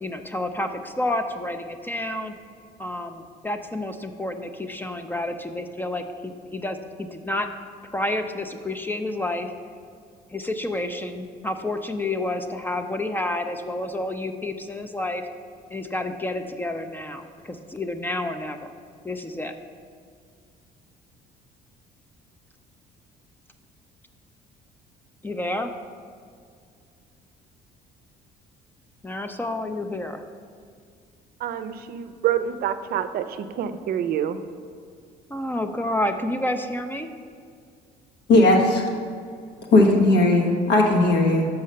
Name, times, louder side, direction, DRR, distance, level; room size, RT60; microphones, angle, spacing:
voice 1, 0.0-2.3 2.8-7.5 7.9-9.5 10.3-15.3 15.7-18.6 19.0-19.6 25.2-25.7 29.0-30.2 35.3-37.1, left 1 dB, 10° left, 7 dB, 0.4 m, -29 dB
voice 2, 31.4-34.4, right 10 dB, 65° right, 11 dB, 0.5 m, -27 dB
voice 3, 38.3-38.8 39.7-41.5, left 2 dB, 90° left, 0 dB, 1.3 m, -17 dB
5.8 x 5.5 x 6.4 m, 2.2 s
cardioid pair, 110°, 17 cm